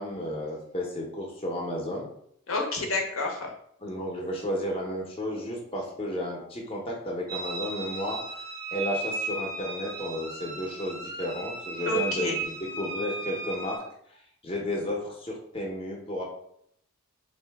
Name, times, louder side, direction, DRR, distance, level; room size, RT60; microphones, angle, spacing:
voice 1, 0.0-2.1 3.8-8.4 8.7-13.8 14.1-16.2, left 1 dB, 25° left, -1 dB, 0.7 m, -33 dB
voice 2, 2.5-3.5 11.9-12.4, left 2 dB, 65° left, 1 dB, 0.7 m, -29 dB
sound 1, 7.3-13.8, right 2 dB, 15° right, 0.6 m, -35 dB
3.8 x 2.6 x 3.4 m, 0.70 s
head